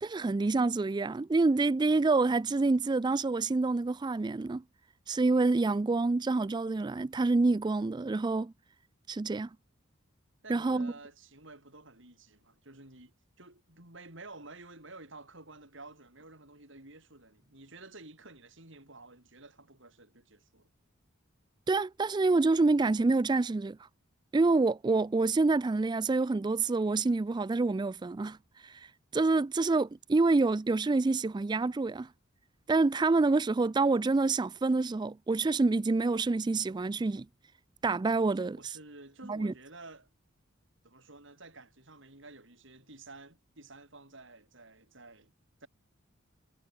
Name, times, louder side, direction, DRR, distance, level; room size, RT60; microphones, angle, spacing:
voice 1, 0.0-4.6 5.1-8.5 9.1-9.5 10.5-10.9 21.7-23.8 24.3-28.4 28.6-28.9 29.1-32.1 32.7-37.3 37.8-38.6 39.3-39.5, right 3 dB, 20° right, 0.3 m, -27 dB
voice 2, 10.4-20.7 38.6-40.1 40.8-45.3 45.6-45.7, right 2 dB, 65° right, 7.7 m, -51 dB
head